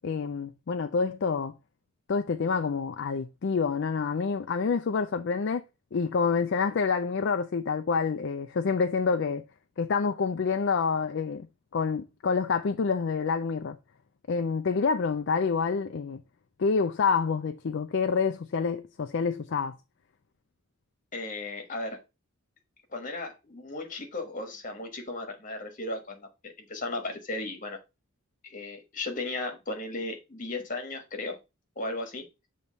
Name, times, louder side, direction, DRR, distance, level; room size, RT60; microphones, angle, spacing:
voice 1, 0.0-1.5 2.1-5.6 5.9-9.4 9.8-11.5 11.7-13.8 14.3-16.2 16.6-19.8, left 5 dB, 55° left, 0.4 m, -27 dB
voice 2, 21.1-22.0 22.9-27.8 28.4-31.4 31.7-32.3, left 2 dB, 35° left, 1.4 m, -36 dB
7.0 x 3.1 x 5.2 m
head